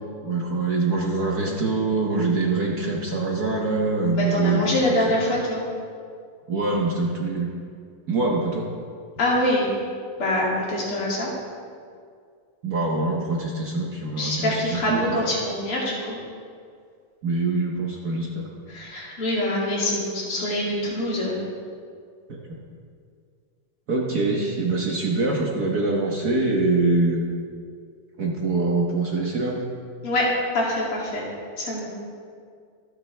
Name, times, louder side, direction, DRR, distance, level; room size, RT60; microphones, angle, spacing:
voice 1, 0.2-5.0 6.5-7.5 8.1-8.7 12.6-15.2 17.2-18.5 22.3-22.6 23.9-27.2 28.2-29.6, right 3 dB, 50° right, -2 dB, 1.6 m, -24 dB
voice 2, 4.1-5.6 9.2-9.7 10.2-11.3 14.2-16.2 18.7-21.4 30.0-30.3 30.5-31.2 31.6-31.9, left 1 dB, 75° left, -5 dB, 3.7 m, -24 dB
24.5 x 8.9 x 3.4 m, 2.2 s
omnidirectional pair, 2.4 m